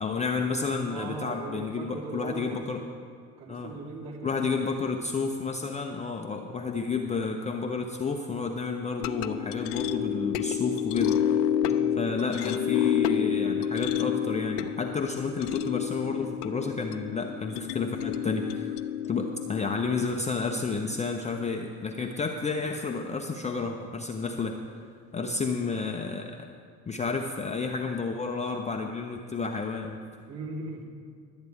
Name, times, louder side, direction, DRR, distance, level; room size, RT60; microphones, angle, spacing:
voice 1, 0.0-2.8 3.5-3.7 4.2-11.2 12.0-18.7 19.1-24.6 25.1-26.5 26.9-30.0, left 4 dB, 15° left, 2 dB, 0.5 m, -31 dB
voice 2, 0.9-2.8 3.4-4.9 6.4-6.8 11.6-12.0 25.1-25.5 30.3-30.9, right 2 dB, 50° right, -3 dB, 3.3 m, -40 dB
sound 1, 9.0-21.4, left 9 dB, 70° left, 0.7 m, -29 dB
23.0 x 8.1 x 3.5 m, 2.1 s
hypercardioid pair, 85°, 49 cm